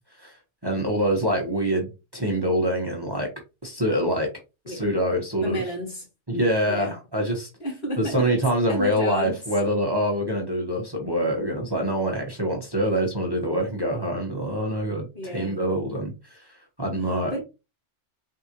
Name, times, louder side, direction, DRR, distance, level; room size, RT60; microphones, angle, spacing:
voice 1, 0.6-3.3 3.6-4.3 4.7-5.6 6.3-7.5 8.0-16.5 16.8-17.3, right 1 dB, 20° right, 1.0 m, -25 dB
voice 2, 5.4-6.0 6.7-6.9 7.6-9.4 15.1-15.7 17.3-17.4, equal, 55° left, 2.3 m, -32 dB
4.0 x 3.7 x 2.9 m
omnidirectional pair, 1.2 m